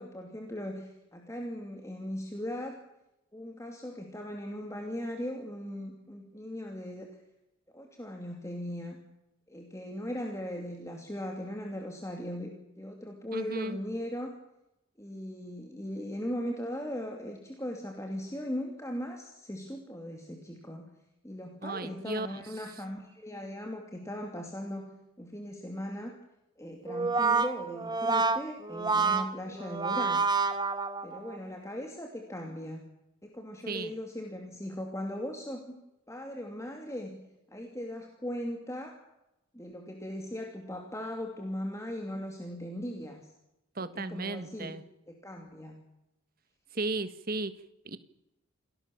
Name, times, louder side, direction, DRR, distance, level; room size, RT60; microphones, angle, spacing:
voice 1, 0.0-2.8 3.3-7.1 7.7-9.0 9.5-14.3 15.0-20.9 21.2-24.9 25.2-26.2 26.6-30.3 31.0-32.9 33.2-35.7 36.1-37.2 37.5-39.0 39.5-43.3 43.8-44.7 45.1-45.8, equal, 15° left, 2 dB, 2.7 m, -38 dB
voice 2, 13.3-13.8 21.6-22.4 33.7-33.9 43.7-44.8 46.7-48.0, right 3 dB, 40° right, 12 dB, 1.5 m, -35 dB
Brass instrument, 26.9-31.4, right 4 dB, 20° right, 1.4 m, -28 dB
28.5 x 19.0 x 7.2 m, 0.91 s
head